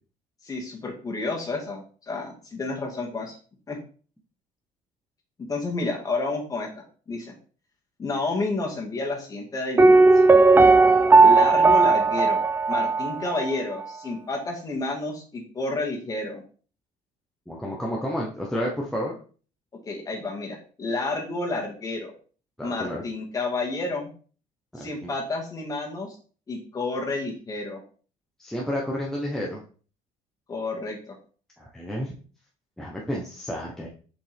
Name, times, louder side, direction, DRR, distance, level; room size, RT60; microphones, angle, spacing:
voice 1, 0.4-3.3 3.7-3.8 5.4-6.7 7.1-7.3 8.0-10.0 11.2-16.4 19.8-22.1 22.6-24.1 24.8-26.2 26.5-27.8 30.5-31.0, left 3 dB, 25° left, 0 dB, 2.0 m, -30 dB
Piano, 9.8-13.6 13.8-13.9, right 3 dB, 15° right, 0.4 m, -16 dB
voice 2, 17.5-19.2 22.6-23.0 24.7-25.1 28.4-29.6 31.6-32.1 32.8-33.9, equal, 5° left, -3 dB, 1.0 m, -31 dB
6.8 x 5.2 x 3.5 m, 0.40 s
cardioid pair, 150°, 15 cm